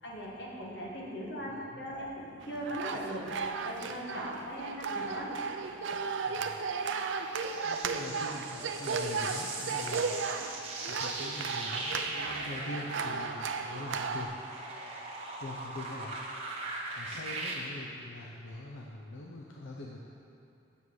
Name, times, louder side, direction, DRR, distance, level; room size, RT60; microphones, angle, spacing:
voice 1, 0.0-5.3, equal, 60° left, -3 dB, 1.5 m, -39 dB
voice 2, 1.5-1.8 6.2-6.6 7.1-7.2 7.6-10.2 10.9-14.3 15.4-16.2 17.0-20.1, left 2 dB, 85° left, -2 dB, 0.7 m, -43 dB
sound 1, 2.4-14.3, right 5 dB, 70° right, 0.5 m, -35 dB
sound 2, 6.9-17.5, right 3 dB, 30° right, 1.2 m, -40 dB
8.4 x 7.2 x 4.7 m, 2.6 s
head